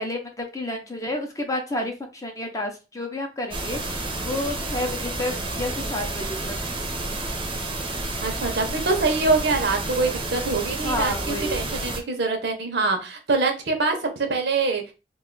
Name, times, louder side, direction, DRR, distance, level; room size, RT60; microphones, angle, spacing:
voice 1, 0.0-6.6 10.8-11.8, left 1 dB, 20° left, 3 dB, 0.6 m, -30 dB
sound 1, 3.5-12.0, right 2 dB, 30° right, 0.6 m, -30 dB
voice 2, 8.2-14.8, right 3 dB, 65° right, 4 dB, 0.7 m, -24 dB
2.5 x 2.3 x 3.7 m, 0.29 s
head